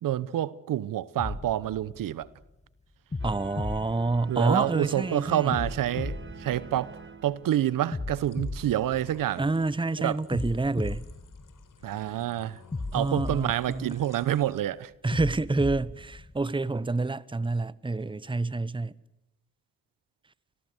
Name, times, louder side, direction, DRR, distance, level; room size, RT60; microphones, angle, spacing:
voice 1, 0.0-2.3 4.3-6.9 7.2-9.4 10.0-10.2 11.8-12.6 12.9-14.9, right 12 dB, 75° right, 1.0 m, -28 dB
sound 1, 1.2-2.5 3.1-4.8 5.5-7.3 7.9-9.7 10.3-12.1 12.7-14.4 15.1-16.5, left 3 dB, 20° left, 1.9 m, -37 dB
voice 2, 3.2-5.6 9.4-11.0 12.9-14.0 15.0-18.9, right 3 dB, 15° right, 1.0 m, -28 dB
sound 2, 3.2-8.0, right 6 dB, 35° right, 1.8 m, -47 dB
sound 3, 8.1-14.6, left 7 dB, 65° left, 4.3 m, -56 dB
30.0 x 20.5 x 8.1 m
supercardioid pair, 55°, 34 cm